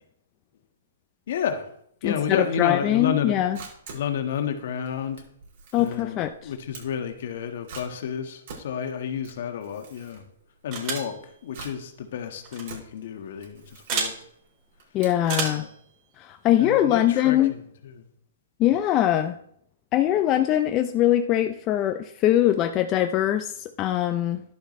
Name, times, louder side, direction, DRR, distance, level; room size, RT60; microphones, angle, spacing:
voice 1, 1.3-1.6 2.0-3.4 3.9-5.2 5.7-10.2 10.6-14.1 15.5-15.7 16.6-17.6 18.0-18.1, left 7 dB, 60° left, 6 dB, 1.7 m, -30 dB
voice 2, 2.0-3.6 5.7-6.5 14.9-15.7 16.2-17.5 18.6-19.4 19.9-24.4, left 12 dB, 30° left, 7 dB, 0.7 m, -22 dB
Camera, 3.2-15.6, right 5 dB, 55° right, 5.4 m, -46 dB
sound 1, 10.7-11.1 12.4-12.6 13.9-14.1 15.2-15.7, right 5 dB, 40° right, 4.6 m, -29 dB
12.0 x 11.5 x 3.3 m, 0.69 s
hypercardioid pair, 125°, 0 cm